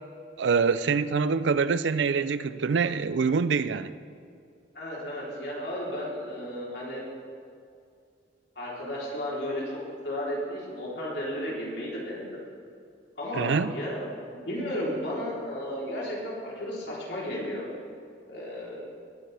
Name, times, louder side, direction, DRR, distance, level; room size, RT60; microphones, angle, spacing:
voice 1, 0.4-3.9 13.4-13.7, right 5 dB, 80° right, 14 dB, 0.4 m, -25 dB
voice 2, 4.7-7.0 8.6-9.6 10.0-12.4 13.2-17.7 18.3-18.8, equal, 65° left, -5 dB, 3.6 m, -33 dB
19.5 x 9.4 x 3.4 m, 2.4 s
head